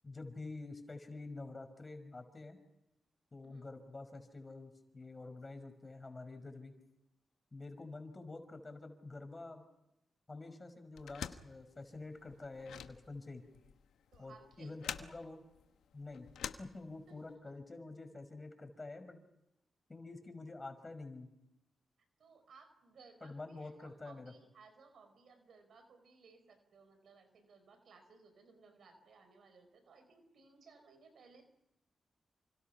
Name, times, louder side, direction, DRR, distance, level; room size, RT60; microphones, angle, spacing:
voice 1, 0.0-2.6 3.3-6.7 7.5-9.6 10.3-13.4 14.2-15.4 15.9-16.3 16.6-19.2 19.9-21.3 23.2-24.3, left 3 dB, 35° left, 7 dB, 5.5 m, -48 dB
sound 1, 10.9-17.3, left 9 dB, 90° left, 1.1 m, -47 dB
voice 2, 14.1-15.1 17.1-17.5 22.2-31.4, right 4 dB, 75° right, 8 dB, 4.9 m, -61 dB
28.5 x 25.5 x 5.9 m, 0.88 s
cardioid pair, 50°, 0 cm